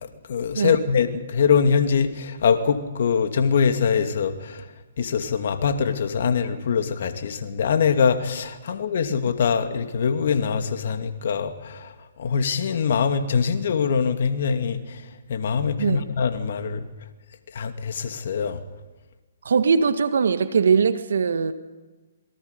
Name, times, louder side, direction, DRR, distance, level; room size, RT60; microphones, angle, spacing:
voice 1, 0.0-4.7 5.0-15.0 15.3-16.9 17.5-18.6, left 6 dB, 60° left, 2.3 m, -23 dB
voice 2, 19.5-21.5, right 5 dB, 70° right, 1.8 m, -21 dB
27.0 x 23.0 x 5.3 m
hypercardioid pair, 140°, 0 cm